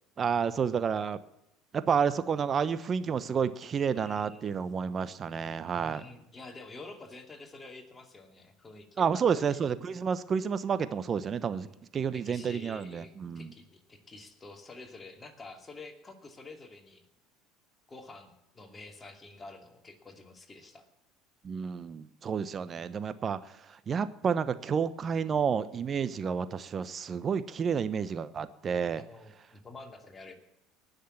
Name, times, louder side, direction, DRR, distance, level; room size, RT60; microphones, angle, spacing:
voice 1, 0.2-1.2 1.7-6.0 9.0-11.7 11.9-13.5 21.4-23.5 23.9-29.0, right 6 dB, 35° right, 13 dB, 1.0 m, -30 dB
voice 2, 3.9-4.6 5.7-9.6 11.4-11.8 12.1-17.0 17.9-20.9 28.9-30.3, left 3 dB, 25° left, 4 dB, 2.7 m, -49 dB
19.0 x 6.6 x 7.4 m, 0.85 s
hypercardioid pair, 75°, 0 cm